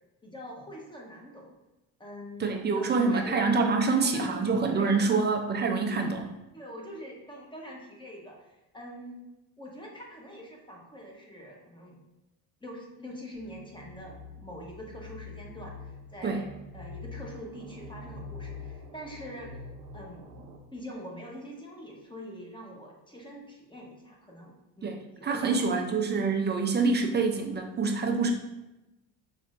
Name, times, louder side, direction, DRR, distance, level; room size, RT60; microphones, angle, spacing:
voice 1, 0.2-1.6 2.0-3.5 3.8-4.4 4.7-5.2 6.5-9.2 9.6-12.0 12.6-19.5 19.9-26.0, equal, 10° left, -2 dB, 0.9 m, -44 dB
voice 2, 2.4-6.3 16.2-16.4 24.8-28.3, right 4 dB, 25° right, 3 dB, 0.4 m, -26 dB
sound 1, 13.3-20.6, left 3 dB, 75° right, 0.8 m, -45 dB
5.8 x 3.1 x 2.5 m, 0.98 s
cardioid pair, 110°, 41 cm